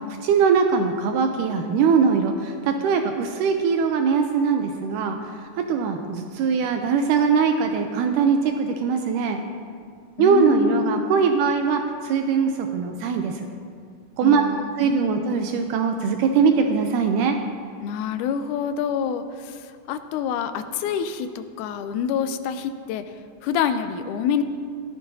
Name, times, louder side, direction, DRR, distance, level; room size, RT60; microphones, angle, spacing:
voice 1, 0.0-5.2 5.7-9.4 10.2-13.5 14.2-14.4 14.8-17.4, right 6 dB, 80° right, 5 dB, 2.1 m, -21 dB
voice 2, 10.2-11.2 14.2-15.3 17.8-23.1 23.4-24.4, left 7 dB, 80° left, 9 dB, 2.0 m, -27 dB
16.5 x 14.0 x 2.7 m, 2.2 s
omnidirectional pair, 3.7 m